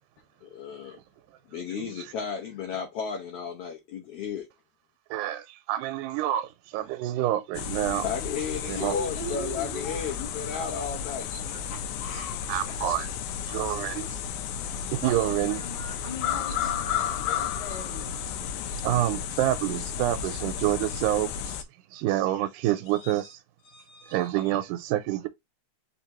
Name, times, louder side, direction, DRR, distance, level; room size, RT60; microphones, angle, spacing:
voice 1, 0.4-1.0 1.5-4.5 8.0-11.3 11.7-12.7, left 6 dB, 65° left, 1.7 m, -34 dB
voice 2, 5.1-8.1 8.7-9.0 11.3-11.4 12.5-13.1 13.5-14.2 14.9-15.6 18.8-21.6 21.9-23.4 24.1-25.3, right 13 dB, 90° right, 2.1 m, -27 dB
sound 1, 7.5-21.6, left 8 dB, 80° left, 2.0 m, -33 dB
voice 3, 8.8-10.2 15.0-18.2 20.0-20.1 20.4-20.6 22.9-23.3 23.6-24.5, left 1 dB, 40° left, 1.8 m, -40 dB
5.1 x 3.4 x 2.9 m
omnidirectional pair, 3.5 m